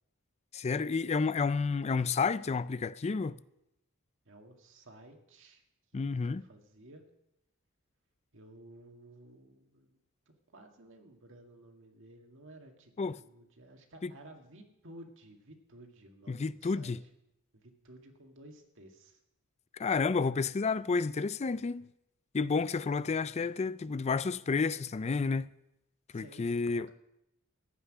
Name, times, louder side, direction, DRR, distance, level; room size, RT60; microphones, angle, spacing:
voice 1, 0.5-3.4 5.9-6.4 13.0-13.2 14.0-14.1 16.3-17.0 19.7-21.9 22.3-25.5 26.1-26.9, left 4 dB, 30° left, 0.4 m, -30 dB
voice 2, 4.3-5.6 5.9-7.0 8.3-10.0 10.3-12.9 13.2-17.1 17.5-19.2 26.1-26.9, right 1 dB, 60° right, 1.9 m, -54 dB
15.5 x 5.9 x 9.8 m
head